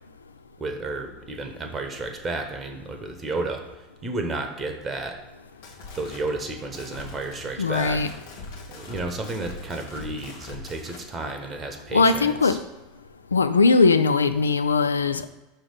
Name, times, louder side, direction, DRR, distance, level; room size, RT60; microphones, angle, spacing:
voice 1, 0.6-3.6 4.0-5.2 5.9-8.1 8.7-12.6, right 2 dB, 25° right, 4 dB, 0.9 m, -32 dB
sound 1, 5.4-11.1, left 3 dB, 70° left, 1.1 m, -42 dB
voice 2, 7.6-8.1 11.9-12.6 13.3-15.3, left 4 dB, 85° left, 11 dB, 0.3 m, -20 dB
5.7 x 3.4 x 5.3 m, 1.1 s
figure-of-eight pair, 75°, 0 cm